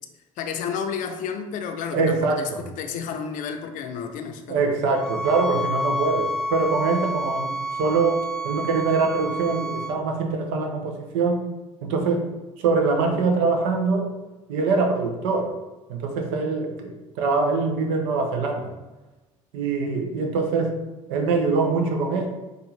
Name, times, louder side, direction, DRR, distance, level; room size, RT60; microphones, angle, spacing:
voice 1, 0.4-4.6, left 6 dB, 50° left, 6 dB, 0.5 m, -31 dB
voice 2, 1.9-2.6 4.5-11.4 11.8-12.3 12.6-14.1 14.5-15.6 15.9-18.7 19.5-20.8 21.1-22.3, right 4 dB, 65° right, 3 dB, 0.7 m, -23 dB
sound 1, 4.9-9.9, equal, 5° left, 0.8 m, -29 dB
4.3 x 2.5 x 3.2 m, 1.1 s
figure-of-eight pair, 60°, 17 cm